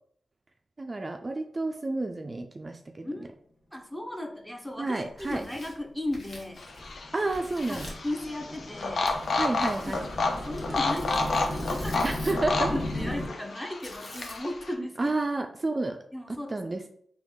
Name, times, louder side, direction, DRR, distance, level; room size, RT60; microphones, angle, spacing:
voice 1, 0.8-3.3 4.8-5.4 7.1-7.9 9.4-10.1 12.0-12.7 14.8-16.0 16.3-16.9, right 2 dB, 35° right, 4 dB, 0.3 m, -31 dB
voice 2, 3.0-3.3 3.7-6.6 7.7-9.1 9.9-10.1 10.5-12.1 12.7-15.2 16.1-16.6, left 1 dB, 5° left, 4 dB, 0.7 m, -36 dB
Tearing, 5.0-7.0 7.3-8.1 9.0-12.5 13.8-14.6, left 1 dB, 60° left, 1.1 m, -46 dB
sound 1, 6.6-14.7, left 3 dB, 75° left, 0.5 m, -31 dB
sound 2, 6.7-13.3, left 1 dB, 35° left, 1.2 m, -36 dB
3.9 x 2.3 x 3.5 m, 0.63 s
cardioid pair, 60°, 0 cm